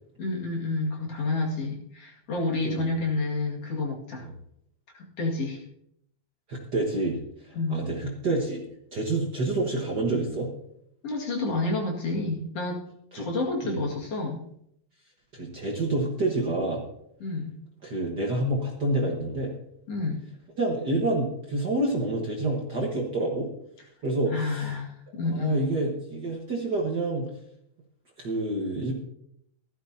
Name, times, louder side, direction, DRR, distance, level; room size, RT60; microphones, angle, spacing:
voice 1, 0.2-4.3 4.9-5.6 7.5-7.8 11.0-12.8 13.1-14.4 17.2-17.5 19.9-20.2 24.3-25.7, left 2 dB, 55° left, -1 dB, 3.1 m, -29 dB
voice 2, 6.5-7.2 7.4-8.6 8.9-10.5 13.2-13.3 13.6-13.8 15.3-16.8 17.8-19.5 20.6-23.5 24.0-24.7 25.3-27.2 28.2-28.9, right 2 dB, 45° right, -1 dB, 1.7 m, -28 dB
16.5 x 13.0 x 2.8 m, 0.72 s
omnidirectional pair, 3.3 m